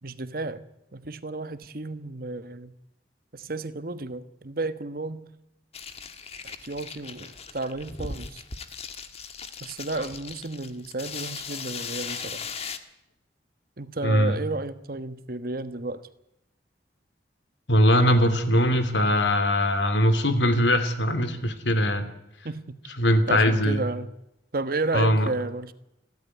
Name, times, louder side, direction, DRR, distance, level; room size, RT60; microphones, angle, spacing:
voice 1, 0.0-0.7 0.9-2.8 3.3-5.3 6.4-8.4 9.6-12.4 13.8-16.0 22.4-22.8 23.3-24.1 24.5-25.7, right 2 dB, 55° right, 12 dB, 1.3 m, -32 dB
sound 1, 5.7-12.8, left 5 dB, 35° left, 1.6 m, -38 dB
voice 2, 14.0-14.4 17.7-22.1 23.0-23.8 24.9-25.3, equal, 85° left, 11 dB, 2.9 m, -21 dB
29.5 x 12.5 x 9.7 m, 0.88 s
head